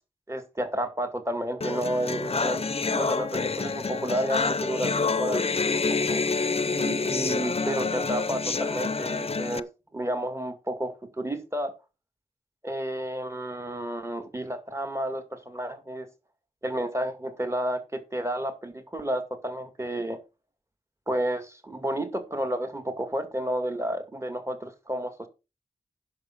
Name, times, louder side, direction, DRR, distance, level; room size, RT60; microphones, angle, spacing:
voice 1, 0.3-2.7 2.9-5.4 5.7-6.2 6.7-9.7 9.9-11.7 12.6-16.1 16.6-20.2 21.1-25.3, right 1 dB, 20° right, 2.2 m, -31 dB
sound 1, 1.6-9.6, left 4 dB, 40° left, 0.6 m, -27 dB
10.5 x 6.3 x 5.9 m
wide cardioid pair, 80°, 15 cm